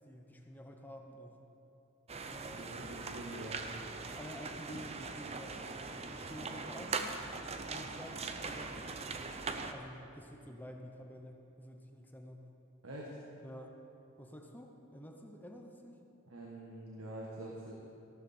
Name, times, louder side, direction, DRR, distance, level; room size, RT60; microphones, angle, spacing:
voice 1, 0.0-1.4 2.2-2.9 4.2-7.2 7.7-8.2 8.4-12.5 13.4-13.8 14.2-16.0, equal, 10° left, 2 dB, 0.8 m, -50 dB
sound 1, 2.1-9.7, right 4 dB, 30° right, 0.6 m, -41 dB
voice 2, 2.5-3.6 12.8-13.1 16.3-17.7, right 1 dB, 85° right, -3 dB, 1.6 m, -45 dB
14.5 x 12.0 x 4.4 m, 2.9 s
head